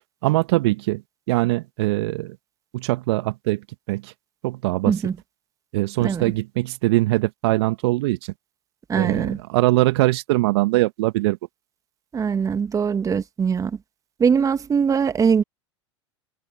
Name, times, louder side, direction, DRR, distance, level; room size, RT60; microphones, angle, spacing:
voice 1, 0.2-1.0 1.3-2.4 2.7-4.1 4.4-4.9 5.7-8.3 8.9-11.4, right 19 dB, 60° right, 1.8 m, -22 dB
voice 2, 8.9-9.4 12.1-13.8 14.2-15.4, right 6 dB, 20° right, 1.8 m, -21 dB
figure-of-eight pair, 90°, 16 cm